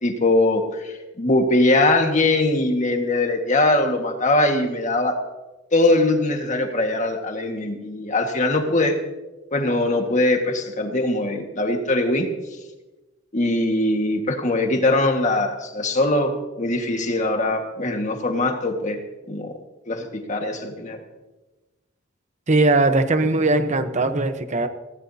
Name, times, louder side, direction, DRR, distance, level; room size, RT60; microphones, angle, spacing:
voice 1, 0.0-5.2 5.7-9.0 9.5-12.3 13.3-19.0 19.3-19.6 19.9-21.0, left 2 dB, 40° left, 4 dB, 1.7 m, -21 dB
voice 2, 22.5-24.7, right 2 dB, 40° right, 9 dB, 1.0 m, -19 dB
20.0 x 16.5 x 2.8 m, 1.1 s
head